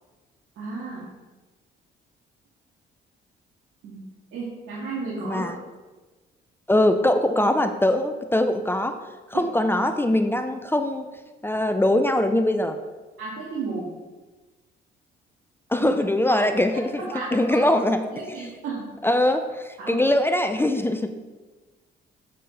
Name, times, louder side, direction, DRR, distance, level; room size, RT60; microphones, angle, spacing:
voice 1, 0.6-1.0 3.8-4.0 4.3-5.5 13.2-13.9 15.8-15.9 16.3-16.4 17.0-17.6 18.1-18.9 19.8-20.0, right 4 dB, 85° right, -8 dB, 2.0 m, -33 dB
voice 2, 5.2-5.6 6.7-9.0 9.3-11.0 11.4-12.8 15.7-17.0 17.3-18.1 19.0-21.1, left 1 dB, 10° left, 7 dB, 0.5 m, -22 dB
7.6 x 6.6 x 3.9 m, 1.2 s
cardioid pair, 90°, 20 cm